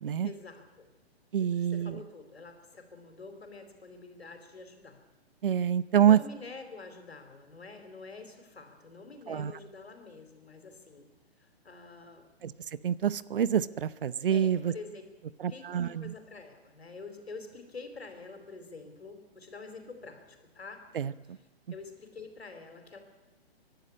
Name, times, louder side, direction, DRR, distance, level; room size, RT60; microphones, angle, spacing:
voice 1, 0.2-0.9 1.6-5.0 6.1-11.1 11.4-12.3 14.3-15.0 15.5-20.8 21.3-21.4 21.7-23.0, left 4 dB, 75° left, 6 dB, 4.1 m, -47 dB
voice 2, 1.3-2.0 5.4-6.2 9.3-9.5 12.4-12.5 12.8-14.7 15.4-16.1 20.9-21.1, right 9 dB, 60° right, 18 dB, 0.8 m, -26 dB
24.0 x 11.5 x 9.7 m, 1.2 s
figure-of-eight pair, 130°, 31 cm